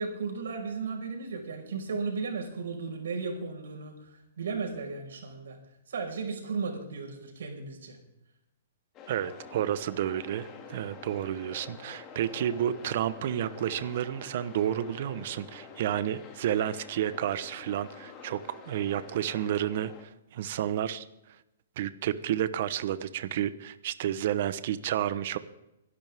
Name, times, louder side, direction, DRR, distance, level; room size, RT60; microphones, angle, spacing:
voice 1, 0.0-3.9 4.4-5.6 5.9-8.0, right 4 dB, 80° right, 1 dB, 5.3 m, -35 dB
sound 1, 8.9-20.0, left 6 dB, 25° left, 2.4 m, -48 dB
voice 2, 9.1-21.0 21.8-25.4, right 11 dB, 55° right, 13 dB, 1.0 m, -31 dB
24.0 x 11.5 x 3.6 m, 0.89 s
hypercardioid pair, 145°, 0 cm